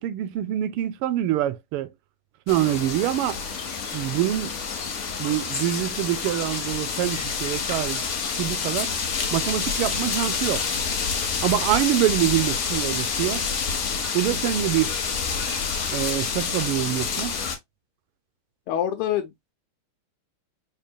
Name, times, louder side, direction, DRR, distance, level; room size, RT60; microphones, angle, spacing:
voice 1, 0.0-1.9 2.5-3.4 3.9-4.5 5.2-8.0 8.4-8.9 9.3-10.6 11.4-13.4 14.1-15.0 15.9-17.3, right 13 dB, 85° right, 1.5 m, -25 dB
sound 1, 2.5-17.6, left 5 dB, 60° left, 0.7 m, -28 dB
voice 2, 18.7-19.5, left 10 dB, 90° left, 1.5 m, -26 dB
4.4 x 3.3 x 2.2 m
omnidirectional pair, 2.4 m